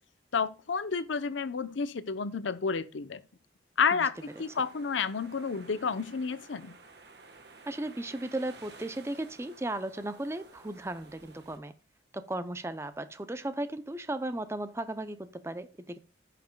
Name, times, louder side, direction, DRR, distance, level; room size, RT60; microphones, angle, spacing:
voice 1, 0.3-3.2 3.8-6.7, left 5 dB, 85° left, 0.6 m, -30 dB
sound 1, 4.1-11.6, right 3 dB, 60° right, 1.2 m, -53 dB
voice 2, 7.7-11.7 12.1-16.0, right 1 dB, 15° right, 0.5 m, -36 dB
16.5 x 5.9 x 2.2 m
head